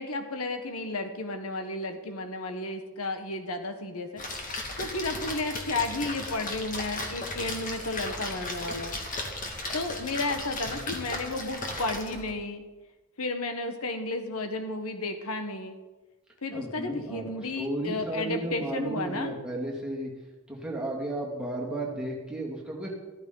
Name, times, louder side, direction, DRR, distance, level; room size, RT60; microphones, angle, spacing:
voice 1, 0.0-4.2 4.8-9.0 9.7-12.6 13.2-15.8 16.4-19.3, left 2 dB, 80° left, 7 dB, 1.3 m, -33 dB
Splash splatter, 4.2-12.3, left 2 dB, 40° left, 2.1 m, -36 dB
voice 2, 16.5-17.3 17.6-20.1 20.5-22.9, right 2 dB, 5° right, -3 dB, 2.4 m, -33 dB
14.0 x 13.5 x 4.0 m, 1.2 s
head